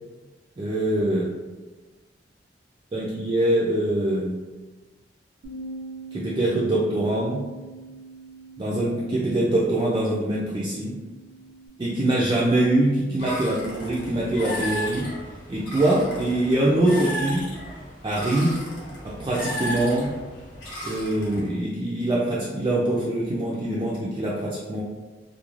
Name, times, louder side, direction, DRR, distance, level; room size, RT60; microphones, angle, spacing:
voice 1, 0.6-1.4 2.9-4.5 6.1-7.5 8.6-11.0 11.8-15.1 15.5-17.5 18.0-18.7 19.0-20.1 20.8-24.8, right 1 dB, 25° right, -6 dB, 0.3 m, -24 dB
Bass guitar, 5.4-11.7, right 3 dB, 85° right, 0.5 m, -42 dB
sound 1, 13.2-21.5, equal, 75° left, 0.9 m, -34 dB
2.4 x 2.0 x 3.0 m, 1.2 s
head